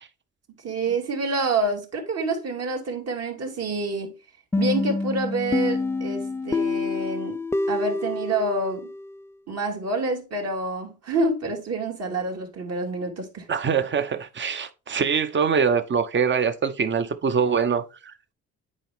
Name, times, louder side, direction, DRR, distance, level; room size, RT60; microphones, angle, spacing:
voice 1, 0.6-4.1 4.6-7.4 7.7-8.9 9.5-13.5, right 2 dB, 55° right, 2.6 m, -27 dB
sound 1, 4.5-9.2, left 3 dB, 10° left, 0.3 m, -27 dB
voice 2, 13.5-18.1, right 6 dB, 40° right, 1.0 m, -24 dB
9.0 x 4.4 x 3.6 m
cardioid pair, 90°, 30 cm